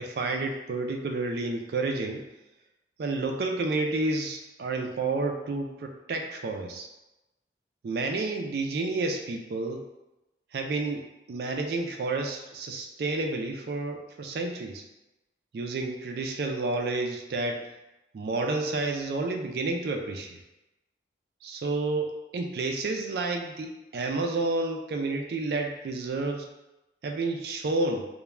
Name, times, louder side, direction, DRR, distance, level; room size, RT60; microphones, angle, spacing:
voice 1, 0.0-2.2 3.0-6.9 7.8-9.9 10.5-11.0 11.3-14.8 15.5-17.7 18.1-20.4 21.4-26.5 27.0-28.1, right 3 dB, 60° right, 3 dB, 0.3 m, -30 dB
2.3 x 2.1 x 3.1 m, 0.97 s
head